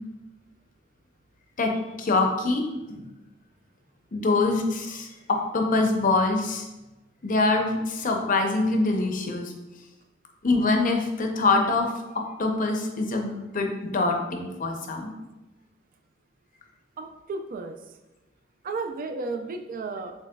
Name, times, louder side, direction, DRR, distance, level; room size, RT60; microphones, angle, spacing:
voice 1, 1.6-3.1 4.1-6.7 7.2-9.5 10.4-15.1, left 3 dB, 45° left, 2 dB, 0.6 m, -25 dB
voice 2, 17.0-17.8 18.6-20.1, right 3 dB, 45° right, 6 dB, 0.4 m, -33 dB
7.3 x 3.1 x 2.2 m, 1.1 s
head